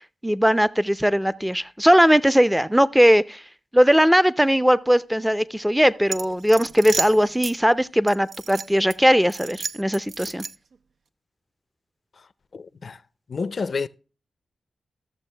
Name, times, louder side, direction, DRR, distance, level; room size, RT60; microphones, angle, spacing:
voice 1, 0.2-3.4 3.7-10.4, equal, 5° right, 0.5 m, -19 dB
sound 1, 6.1-7.6 8.1-9.0 9.3-10.8, right 5 dB, 70° right, 0.4 m, -32 dB
voice 2, 12.5-13.0 13.3-13.9, left 4 dB, 60° left, 0.5 m, -29 dB
13.5 x 6.9 x 3.3 m
cardioid pair, 45°, 0 cm